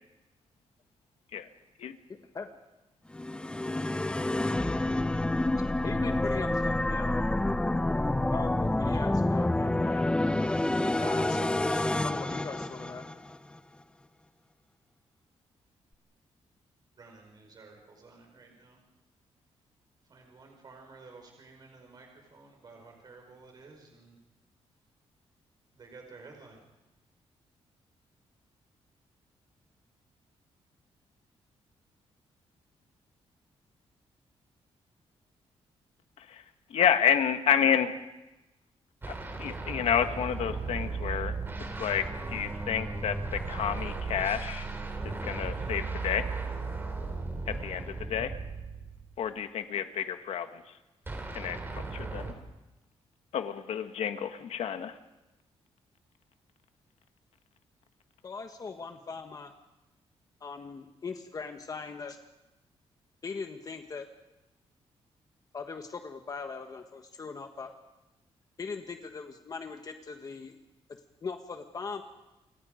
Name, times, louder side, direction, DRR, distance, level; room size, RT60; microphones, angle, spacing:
voice 1, 2.1-2.5 5.8-7.2 8.3-10.1 10.8-13.0 58.2-59.5 60.4-62.2 63.2-64.1 65.5-67.7 68.6-70.5 71.2-72.0, left 4 dB, 35° left, 6 dB, 1.4 m, -40 dB
sound 1, 3.1-13.4, left 1 dB, 10° left, 0.7 m, -28 dB
voice 2, 17.0-18.8 20.1-24.1 25.7-26.6, right 3 dB, 40° right, 2 dB, 4.9 m, -52 dB
voice 3, 36.7-37.9 39.4-41.3 41.8-42.0 42.3-44.7 45.0-46.3 47.5-48.3 49.2-50.6 51.3-51.6 51.9-52.3 53.3-54.9, left 8 dB, 75° left, 8 dB, 1.6 m, -29 dB
sound 2, 39.0-49.3 51.1-52.3, right 3 dB, 20° right, 3.1 m, -36 dB
29.0 x 25.0 x 5.2 m, 1.0 s
wide cardioid pair, 145°, 11 cm